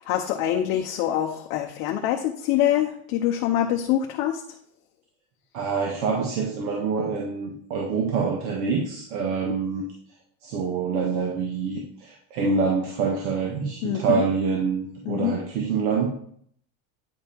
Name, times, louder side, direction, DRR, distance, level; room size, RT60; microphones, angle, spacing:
voice 1, 0.0-4.4 13.8-14.2 15.1-15.3, left 11 dB, 40° left, 2 dB, 0.7 m, -25 dB
voice 2, 5.5-9.8 10.4-16.1, right 5 dB, 90° right, 0 dB, 1.7 m, -26 dB
9.7 x 5.4 x 4.5 m, 0.64 s
cardioid pair, 175°, 42 cm